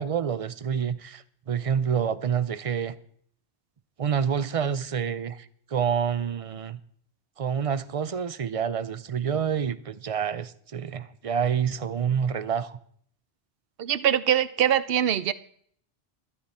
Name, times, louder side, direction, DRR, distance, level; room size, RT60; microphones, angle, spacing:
voice 1, 0.0-3.0 4.0-5.5 5.7-6.8 7.4-12.8, right 7 dB, 45° right, 0.5 m, -28 dB
voice 2, 13.8-15.3, right 10 dB, 65° right, 0.8 m, -23 dB
13.0 x 12.0 x 4.3 m
omnidirectional pair, 1.1 m